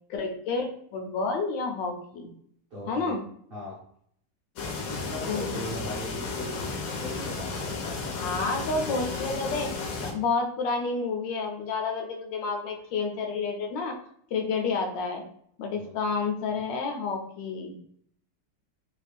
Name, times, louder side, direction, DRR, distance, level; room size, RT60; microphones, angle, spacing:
voice 1, 0.1-2.3 2.9-3.2 5.3-5.6 8.1-9.7 10.0-14.0 14.3-15.2 15.6-17.8, left 4 dB, 85° left, 3 dB, 1.3 m, -30 dB
voice 2, 2.7-3.2 3.5-3.8 4.9-6.7 7.0-8.3 15.8-16.0, left 1 dB, 50° right, -7 dB, 0.7 m, -38 dB
sound 1, 4.6-10.1, left 4 dB, 70° left, 0.9 m, -33 dB
3.3 x 2.3 x 3.3 m, 0.66 s
omnidirectional pair, 1.9 m